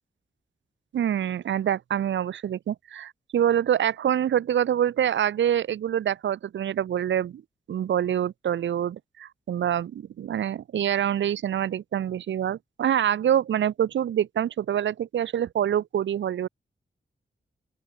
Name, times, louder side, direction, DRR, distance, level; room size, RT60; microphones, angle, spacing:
voice 1, 0.9-7.4 7.7-16.5, right 10 dB, 85° right, 0.5 m, -26 dB
open air
wide cardioid pair, 105°, 19 cm